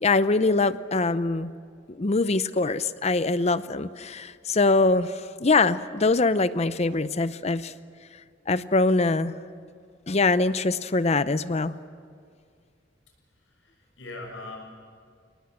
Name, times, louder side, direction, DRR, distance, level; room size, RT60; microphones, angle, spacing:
voice 1, 0.0-1.5 2.0-5.1 5.4-7.7 8.5-9.3 10.1-11.7, left 3 dB, 35° left, 14 dB, 0.7 m, -23 dB
voice 2, 13.1-14.6, left 2 dB, 85° left, 1 dB, 6.7 m, -42 dB
29.0 x 19.0 x 7.8 m, 2.2 s
head